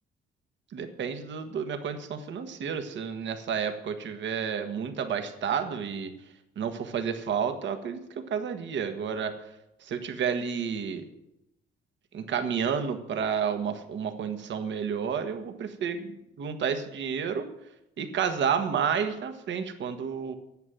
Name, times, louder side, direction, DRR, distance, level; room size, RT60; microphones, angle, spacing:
voice 1, 0.7-6.1 6.6-9.3 9.8-11.0 12.1-16.1 16.4-17.5 18.0-20.4, right 7 dB, 65° right, 7 dB, 1.5 m, -30 dB
10.5 x 7.9 x 9.1 m, 0.88 s
cardioid pair, 90°, 20 cm